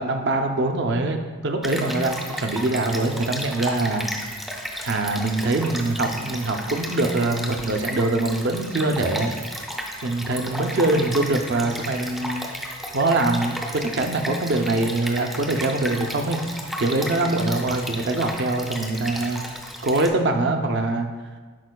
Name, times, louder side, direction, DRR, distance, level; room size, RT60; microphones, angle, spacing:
voice 1, 0.0-4.1 4.8-9.3 10.0-12.5 12.9-16.4 16.8-19.4 19.8-21.1, right 2 dB, 55° right, 5 dB, 0.5 m, -23 dB
Stream, 1.6-20.1, equal, ahead, 0.4 m, -33 dB
11.0 x 4.4 x 2.2 m, 1.4 s
head